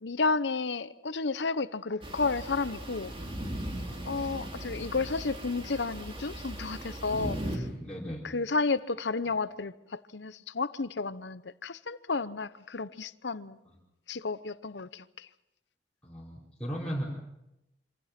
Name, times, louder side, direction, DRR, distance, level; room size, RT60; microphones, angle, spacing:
voice 1, 0.0-3.1 4.0-7.6 8.2-13.6 14.1-15.3, left 4 dB, 75° left, 0.9 m, -32 dB
sound 1, 2.0-7.6, right 1 dB, 30° right, 3.3 m, -38 dB
voice 2, 3.6-4.3 7.1-8.2 13.7-13.8 16.0-17.0, equal, 5° left, 4.6 m, -38 dB
26.5 x 26.5 x 6.0 m
head